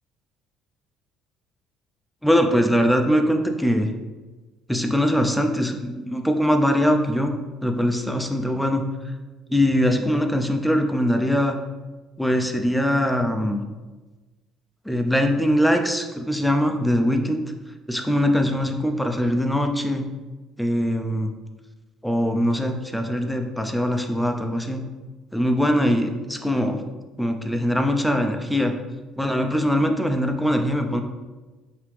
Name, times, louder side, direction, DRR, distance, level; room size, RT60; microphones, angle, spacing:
voice 1, 2.2-3.9 4.7-7.3 7.6-8.8 9.5-11.6 12.2-13.6 14.9-17.4 17.9-20.0 20.6-21.3 22.0-24.8 25.3-26.8 27.2-28.7 29.2-31.0, equal, 5° left, 4 dB, 0.5 m, -22 dB
5.0 x 2.8 x 3.2 m, 1.2 s
supercardioid pair, 90°, 0 cm